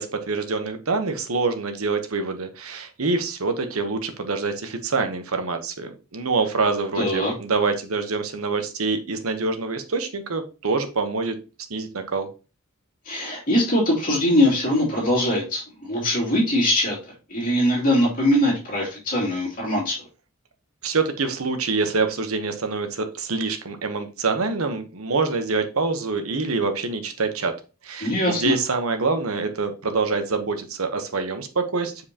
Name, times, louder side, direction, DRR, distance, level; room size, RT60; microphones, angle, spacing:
voice 1, 0.0-11.4 11.7-12.3 20.8-27.5 27.8-32.0, right 4 dB, 80° right, 8 dB, 1.0 m, -25 dB
voice 2, 7.0-7.3 13.0-17.0 17.3-20.0 28.0-28.5, left 1 dB, 40° left, -4 dB, 2.8 m, -22 dB
7.5 x 4.6 x 2.9 m, 0.32 s
head